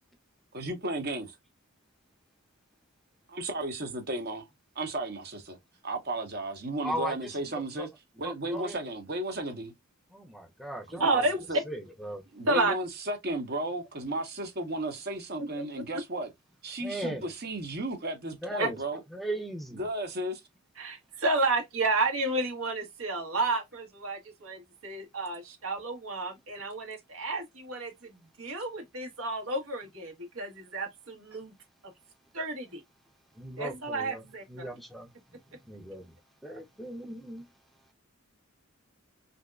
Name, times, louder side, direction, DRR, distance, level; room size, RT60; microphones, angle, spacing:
voice 1, 0.5-1.3 3.3-4.5 4.7-5.6 5.8-7.9 8.2-9.7 10.9-11.2 11.5-11.6 12.3-16.3 16.6-19.0 19.8-20.4, right 2 dB, 50° right, 1.0 m, -34 dB
voice 2, 6.8-7.9 8.2-8.8 10.1-11.3 11.6-12.2 16.8-17.3 18.4-18.8 19.1-19.9 33.3-34.2 34.5-36.2 36.4-37.5, right 1 dB, ahead, 0.6 m, -38 dB
voice 3, 11.0-11.4 12.5-12.7 15.6-15.7 18.6-18.7 20.8-28.1 28.4-31.5 32.3-32.8 33.6-34.4, right 2 dB, 85° right, 1.4 m, -31 dB
3.6 x 2.7 x 2.3 m
head